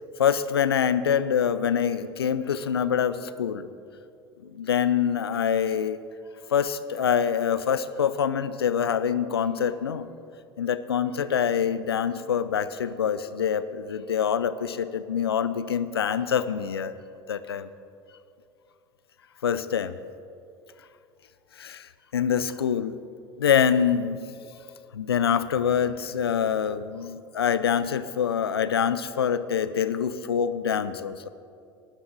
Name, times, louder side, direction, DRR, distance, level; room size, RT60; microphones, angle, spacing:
voice 1, 0.2-3.7 4.4-6.0 6.5-10.1 10.6-16.9 17.3-17.7 19.4-19.9 21.6-23.0 23.4-24.2 24.9-31.3, left 8 dB, 90° left, 14 dB, 0.5 m, -25 dB
18.0 x 11.0 x 4.1 m, 2.5 s
hypercardioid pair, 70°, 13 cm